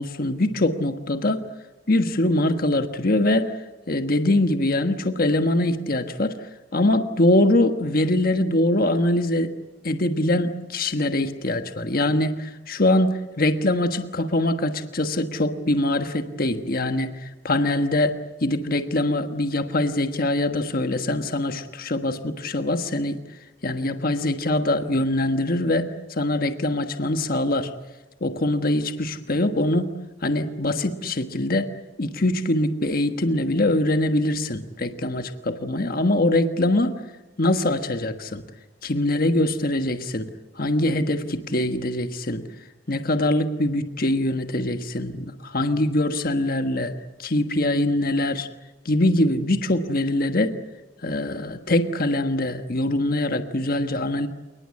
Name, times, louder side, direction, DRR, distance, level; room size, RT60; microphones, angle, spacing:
voice 1, 0.0-1.4 1.9-3.6 3.9-6.4 6.7-9.5 9.8-23.2 23.6-27.7 28.2-29.9 30.2-31.7 32.0-37.0 37.4-38.4 38.8-40.3 40.6-42.5 42.9-46.9 47.2-48.5 48.8-50.6 51.0-54.3, left 1 dB, 50° left, 7 dB, 1.4 m, -23 dB
29.0 x 19.5 x 8.6 m, 1.1 s
head